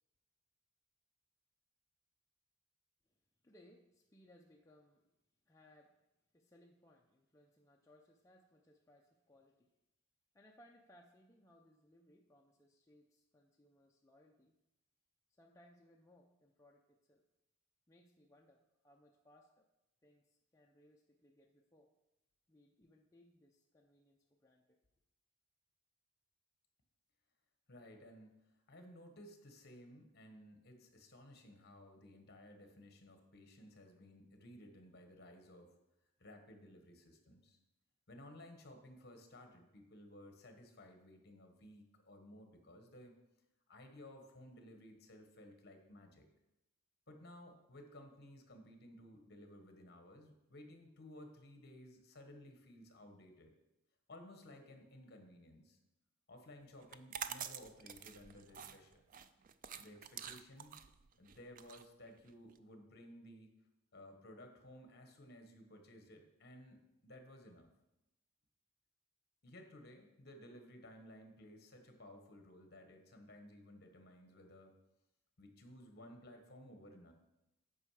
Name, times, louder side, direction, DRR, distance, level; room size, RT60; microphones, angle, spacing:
voice 1, 3.4-5.1 5.5-6.0 6.3-9.7 10.3-14.5 15.4-17.2 17.9-19.7 20.0-21.9 22.5-24.8, left 1 dB, 15° left, 0 dB, 0.5 m, -66 dB
voice 2, 27.7-28.4 28.7-35.7 36.2-37.6 38.1-43.1 43.7-46.3 47.1-53.5 54.1-55.8 56.3-59.0 59.8-60.8 61.2-63.6 63.9-67.7 69.4-74.8 75.4-77.1, left 1 dB, 50° left, 5 dB, 1.3 m, -57 dB
sound 1, 56.8-62.6, right 8 dB, 40° right, 0.4 m, -48 dB
8.6 x 5.5 x 4.9 m, 0.94 s
head